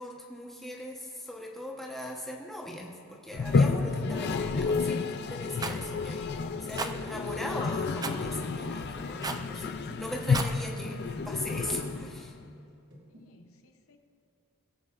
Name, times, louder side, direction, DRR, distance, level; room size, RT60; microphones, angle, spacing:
voice 1, 0.0-12.3, left 1 dB, ahead, -2 dB, 1.0 m, -40 dB
Toilet flush, 3.3-12.4, left 4 dB, 50° left, 0.4 m, -30 dB
Rattle, 5.6-5.8 6.7-6.9 8.0-8.2 9.2-9.5 10.2-10.6, right 4 dB, 15° right, 0.3 m, -34 dB
sound 1, 8.5-12.1 12.4-13.2, equal, 50° right, 2.1 m, -48 dB
voice 2, 13.1-14.0, left 2 dB, 70° left, 5 dB, 0.8 m, -61 dB
19.0 x 8.0 x 2.5 m, 2.7 s
head